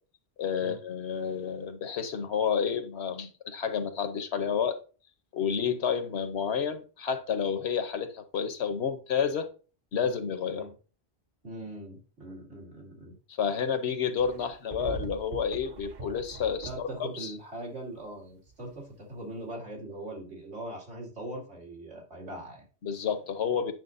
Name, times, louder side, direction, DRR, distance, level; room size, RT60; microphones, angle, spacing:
voice 1, 0.4-4.8 5.3-9.5 9.9-10.7 13.4-17.3 22.8-23.7, left 7 dB, 80° left, 1.1 m, -30 dB
voice 2, 11.4-13.1 16.7-22.6, right 1 dB, 85° right, 2.8 m, -41 dB
sound 1, 14.2-17.0 18.5-18.6, right 4 dB, 50° right, 0.7 m, -42 dB
9.2 x 6.1 x 2.6 m
omnidirectional pair, 1.1 m